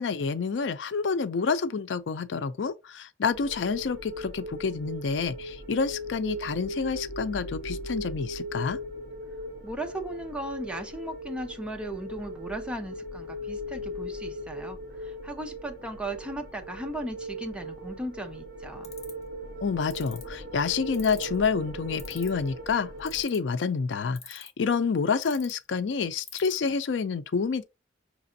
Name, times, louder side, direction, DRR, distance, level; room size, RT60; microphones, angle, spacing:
voice 1, 0.0-8.8 19.6-27.6, left 5 dB, 80° left, 0.4 m, -28 dB
sound 1, 3.3-23.2, equal, 55° right, 1.9 m, -38 dB
voice 2, 9.6-18.9, right 1 dB, 5° right, 0.7 m, -37 dB
sound 2, 18.8-19.2 19.9-20.2 20.9-21.4 22.0-22.5 23.1-23.5 24.2-24.6 25.2-25.5 26.2-26.6, left 6 dB, 35° left, 1.5 m, -43 dB
6.0 x 3.3 x 2.7 m
head